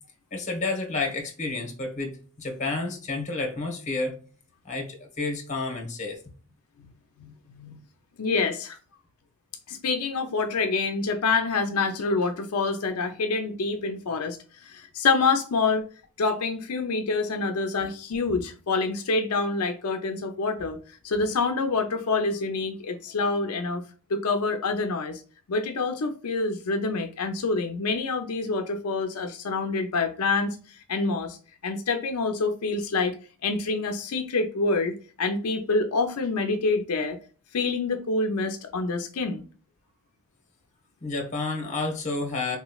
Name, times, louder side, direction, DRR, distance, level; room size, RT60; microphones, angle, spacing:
voice 1, 0.3-4.2 4.6-6.2 41.0-42.6, left 3 dB, 35° left, 1.1 m, -30 dB
voice 2, 7.2-7.8 8.2-8.8 9.7-14.4 14.6-15.9 16.2-20.8 21.0-23.8 24.1-25.2 25.5-31.4 31.6-33.1 33.4-37.2 37.5-39.4, left 3 dB, 85° left, 0.5 m, -27 dB
3.7 x 3.0 x 2.3 m
head